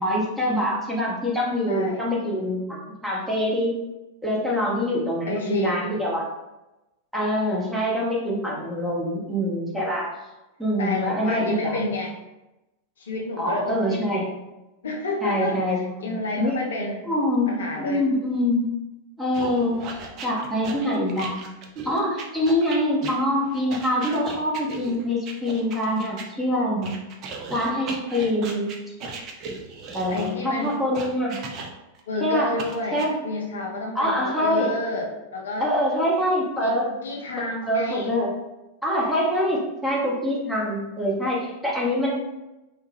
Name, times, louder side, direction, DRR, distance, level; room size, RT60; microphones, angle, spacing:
voice 1, 0.0-3.7 4.2-6.2 7.1-10.1 10.6-11.8 13.4-14.3 15.2-16.5 17.1-18.6 19.2-20.0 20.2-21.4 21.8-27.0 27.5-28.7 29.9-31.4 32.2-32.5 32.9-33.2 33.9-34.7 35.6-36.9 37.4-38.3 38.8-42.1, equal, 5° right, -5 dB, 0.7 m, -25 dB
voice 2, 1.7-2.1 5.3-6.0 10.8-12.2 13.0-14.1 14.8-17.1 17.5-18.0 30.1-30.8 32.1-35.7 36.6-38.2, left 2 dB, 65° left, 0 dB, 0.4 m, -30 dB
sound 1, 19.3-26.3 26.8-32.0 32.6-33.1, right 4 dB, 40° right, 0.4 m, -37 dB
2.1 x 2.0 x 3.1 m, 0.99 s
figure-of-eight pair, 90°, 0 cm